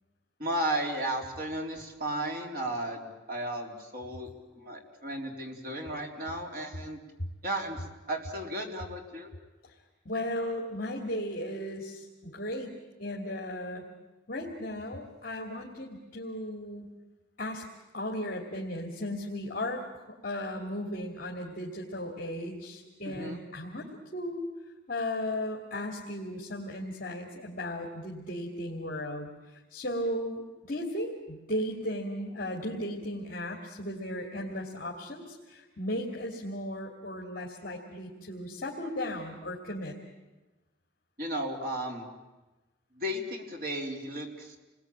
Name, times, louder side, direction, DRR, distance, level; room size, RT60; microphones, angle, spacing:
voice 1, 0.4-4.3 4.5-7.0 7.4-9.3 23.1-23.4 41.2-42.1 43.0-44.6, right 1 dB, 50° right, 1 dB, 3.9 m, -34 dB
voice 2, 10.0-13.9 14.3-16.9 17.4-17.6 17.9-24.5 24.9-39.9, left 1 dB, 50° left, -1 dB, 2.8 m, -36 dB
29.5 x 21.0 x 8.9 m, 1.1 s
head